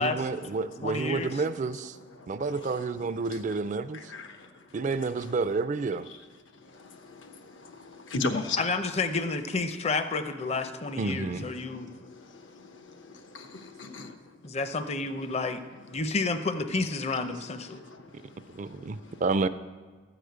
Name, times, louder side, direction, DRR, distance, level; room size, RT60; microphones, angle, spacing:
voice 1, 0.0-2.0 2.3-4.1 4.7-6.1 11.0-11.5 18.5-19.5, right 4 dB, 40° right, 12 dB, 0.4 m, -30 dB
voice 2, 0.8-1.3 8.6-11.9 14.4-15.6 15.9-17.8, left 3 dB, 35° left, 9 dB, 0.6 m, -30 dB
voice 3, 2.2-2.7 3.9-4.9 6.6-8.6 11.6-14.2 17.7-19.2, left 3 dB, 85° left, 6 dB, 1.0 m, -38 dB
13.0 x 5.0 x 8.0 m, 1.4 s
head